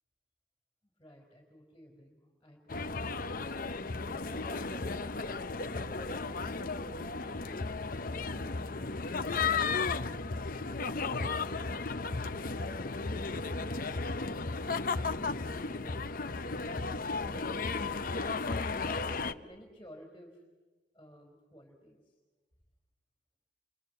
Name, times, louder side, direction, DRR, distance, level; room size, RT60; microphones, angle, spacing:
voice 1, 0.8-3.3 4.0-9.2 9.8-10.3 10.7-18.0 18.7-20.4 20.9-22.1, equal, 15° left, 0 dB, 4.3 m, -54 dB
sound 1, 2.7-19.3, left 4 dB, 50° left, 0.8 m, -34 dB
29.5 x 25.5 x 7.9 m, 1.2 s
head